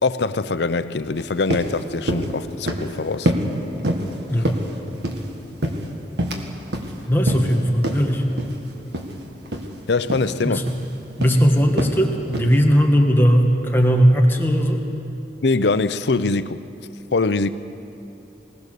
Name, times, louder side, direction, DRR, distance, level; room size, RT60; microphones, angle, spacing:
voice 1, 0.0-3.4 9.9-10.6 15.4-16.6 17.1-17.5, left 3 dB, 75° left, 13 dB, 0.6 m, -22 dB
sound 1, 1.2-1.3 1.5-1.7 2.1-2.3 2.7-2.9 3.3-3.5 3.8-4.1 4.4-5.3 5.6-6.5 6.7-6.9 7.3-7.5 7.8-8.0 8.4-8.6 8.9-9.1 9.5-9.7 10.1-10.3 10.7-10.9 11.2-11.4 11.8-12.0 12.3-12.6, right 1 dB, 70° right, 1.8 m, -25 dB
voice 2, 7.1-8.2 10.4-10.7 11.2-14.8, equal, 10° left, 1 dB, 1.5 m, -18 dB
20.0 x 20.0 x 6.7 m, 2.9 s
head